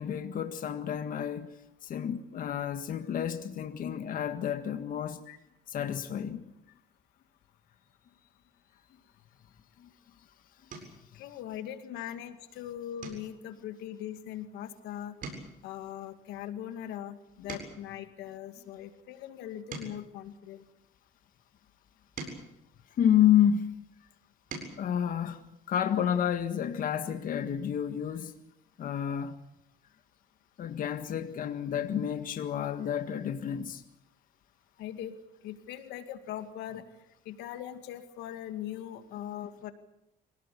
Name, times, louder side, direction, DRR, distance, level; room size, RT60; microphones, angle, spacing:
voice 1, 0.0-1.5 1.8-5.2 5.7-6.5 9.8-9.9 11.1-11.2 23.0-23.7 24.8-28.3 28.8-29.4 30.6-33.8, left 9 dB, 55° left, 1.8 m, -30 dB
sound 1, 10.7-11.1 11.6-11.9 12.3-12.5 13.0-14.8 15.1-18.0 18.6-21.1 21.7-23.6 24.1-24.9 26.3-26.4 26.7-26.8, right 4 dB, 55° right, 7.6 m, -47 dB
voice 2, 11.1-15.2 15.6-20.6 34.8-35.2 35.4-36.8 37.3-39.7, left 11 dB, 85° left, 2.3 m, -40 dB
25.5 x 18.0 x 8.6 m
cardioid pair, 110°, 17 cm